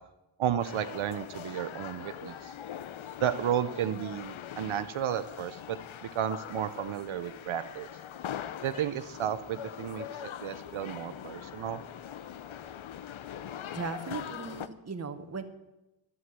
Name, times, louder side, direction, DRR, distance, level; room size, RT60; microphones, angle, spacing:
voice 1, 0.4-2.5 3.2-7.9 8.6-10.1 10.4-11.8, right 10 dB, 75° right, 11 dB, 0.7 m, -33 dB
sound 1, 0.6-14.7, left 9 dB, 75° left, 0.8 m, -42 dB
voice 2, 13.7-15.4, right 4 dB, 30° right, 9 dB, 1.0 m, -37 dB
11.5 x 9.6 x 7.4 m, 0.99 s
wide cardioid pair, 135°, 48 cm